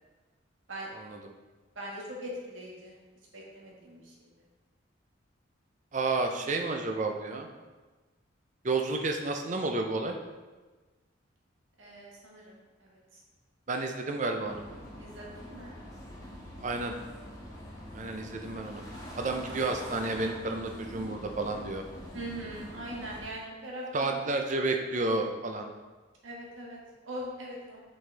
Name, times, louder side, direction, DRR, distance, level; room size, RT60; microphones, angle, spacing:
voice 1, 1.7-3.0 3.3-4.3 11.8-13.2 15.0-15.8 22.1-24.2 26.2-26.8 27.0-27.8, right 1 dB, 90° right, -3 dB, 1.7 m, -41 dB
voice 2, 5.9-7.5 8.6-10.2 13.7-14.6 16.6-16.9 17.9-18.8 19.2-21.8 23.9-25.7, right 3 dB, 40° right, 4 dB, 0.6 m, -31 dB
sound 1, 14.4-23.2, equal, 20° left, 1.4 m, -44 dB
6.2 x 5.4 x 3.4 m, 1.3 s
head